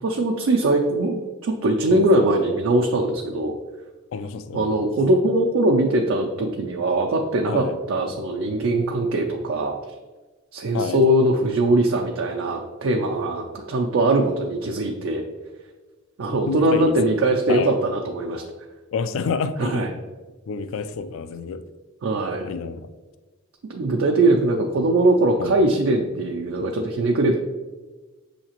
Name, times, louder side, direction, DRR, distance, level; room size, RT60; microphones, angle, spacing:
voice 1, 0.0-3.5 4.5-9.8 10.5-15.2 16.2-18.4 19.6-19.9 22.0-22.5 23.7-27.4, right 1 dB, 60° right, 2 dB, 0.4 m, -21 dB
voice 2, 4.1-4.7 7.5-7.8 10.7-11.0 16.5-16.9 17.5-17.8 18.9-20.0 20.5-21.6 22.4-22.9 25.4-25.5, left 5 dB, 65° left, 11 dB, 0.3 m, -28 dB
6.5 x 2.8 x 2.9 m, 1.3 s
head